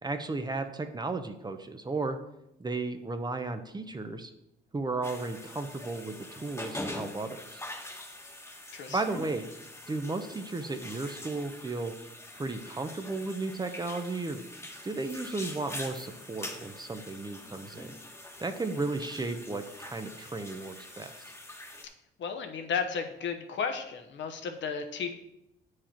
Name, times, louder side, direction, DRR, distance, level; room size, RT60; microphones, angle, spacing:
voice 1, 0.0-2.2 2.6-4.3 4.7-7.6 8.9-9.5 9.9-11.9 12.3-14.4 14.8-18.0 18.4-21.2, right 3 dB, 20° right, 7 dB, 0.7 m, -34 dB
sound 1, 5.0-21.9, left 1 dB, 15° left, 1.3 m, -44 dB
voice 2, 22.2-25.1, left 6 dB, 70° left, 6 dB, 1.0 m, -33 dB
8.9 x 4.8 x 4.4 m, 0.85 s
cardioid pair, 90°, 20 cm